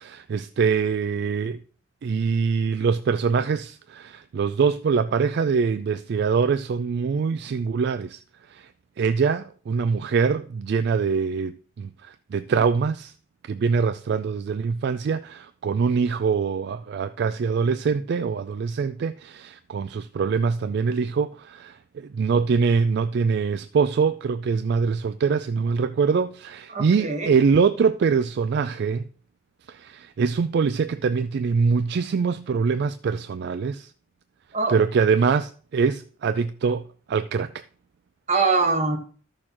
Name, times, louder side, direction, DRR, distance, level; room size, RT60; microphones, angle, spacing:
voice 1, 0.0-1.6 2.0-8.2 8.5-8.7 9.0-13.1 13.5-29.0 29.7-33.9 34.7-36.8 37.1-37.6, right 5 dB, 55° right, 0.3 m, -24 dB
voice 2, 26.7-27.3 34.5-34.8 38.3-39.0, right 3 dB, 35° right, 1.3 m, -23 dB
13.5 x 6.5 x 2.9 m
head